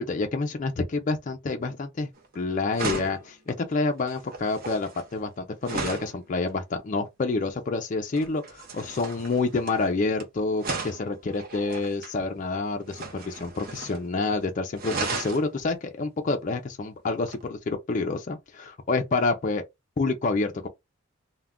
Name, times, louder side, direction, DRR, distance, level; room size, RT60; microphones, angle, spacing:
voice 1, 0.0-2.1 2.3-19.6 20.0-20.7, left 3 dB, 35° left, 0.4 m, -28 dB
sound 1, 2.2-2.4 2.7-6.2 8.1-10.2 10.6-12.2 12.9-14.1 14.3-14.4 14.7-15.5 17.3-17.4, right 3 dB, 45° right, 0.6 m, -35 dB
2.3 x 2.1 x 3.4 m
head